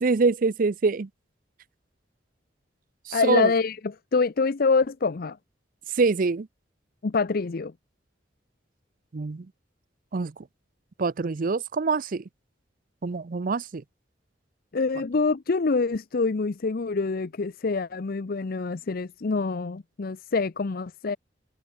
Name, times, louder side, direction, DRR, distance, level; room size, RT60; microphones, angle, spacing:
voice 1, 0.0-1.1 3.1-3.5 6.0-6.5 9.1-9.5 10.1-10.3 11.0-12.2 13.0-13.8, right 4 dB, 50° right, 0.5 m, -25 dB
voice 2, 3.1-5.4 7.0-7.7 14.7-21.2, left 4 dB, 55° left, 0.6 m, -26 dB
head